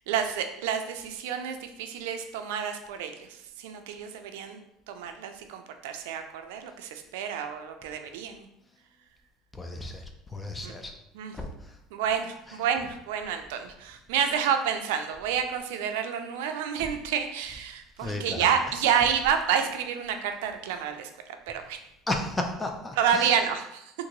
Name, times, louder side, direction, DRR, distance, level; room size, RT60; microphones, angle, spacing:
voice 1, 0.0-4.6 4.9-8.5 10.6-10.8 11.1-11.4 11.9-21.8 23.0-23.9, right 8 dB, 90° right, 6 dB, 0.4 m, -29 dB
voice 2, 9.5-10.0 10.3-10.9 11.3-11.5 18.0-18.4 22.1-23.3, left 2 dB, 15° left, 4 dB, 0.4 m, -33 dB
3.7 x 2.5 x 3.0 m, 0.82 s
supercardioid pair, 120°, 0 cm